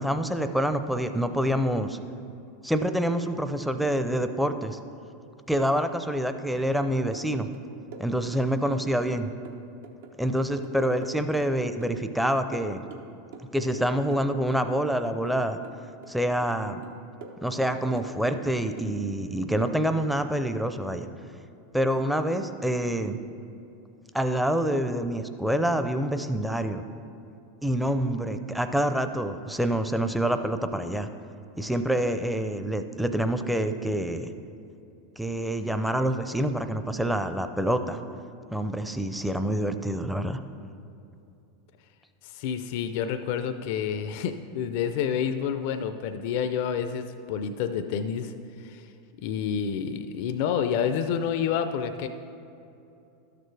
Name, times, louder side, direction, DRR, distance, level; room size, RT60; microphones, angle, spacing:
voice 1, 0.0-2.0 2.6-4.8 5.5-7.5 8.0-9.3 10.2-12.8 13.5-15.6 16.1-16.8 17.4-21.1 21.7-23.2 24.1-26.8 27.6-31.1 31.6-34.3 35.2-38.0 38.5-40.4, right 1 dB, ahead, 8 dB, 0.5 m, -27 dB
sound 1, 6.7-7.3 7.5-9.2 9.5-12.3 12.5-13.5 13.7-15.4 15.6-16.6 16.8-18.5 18.8-19.0, right 4 dB, 75° right, 0.9 m, -45 dB
voice 2, 42.2-48.3 48.6-48.8 49.2-52.1, left 7 dB, 65° left, 8 dB, 0.4 m, -29 dB
12.0 x 6.7 x 3.3 m, 2.7 s
hypercardioid pair, 115°, 0 cm